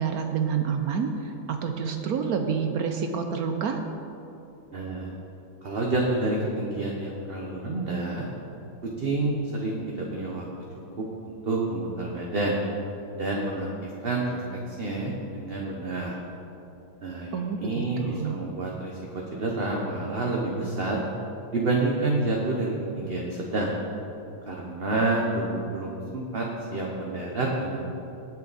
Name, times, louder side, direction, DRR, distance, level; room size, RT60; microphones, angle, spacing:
voice 1, 0.0-3.8 17.3-18.4, right 6 dB, 65° right, 5 dB, 0.9 m, -28 dB
voice 2, 4.7-5.1 5.6-8.2 9.0-10.4 11.0-12.6 13.2-16.1 17.0-19.0 19.3-21.0 21.5-23.7 24.5-27.8, right 2 dB, 40° right, -2 dB, 1.0 m, -28 dB
19.0 x 7.0 x 4.1 m, 2.8 s
omnidirectional pair, 2.2 m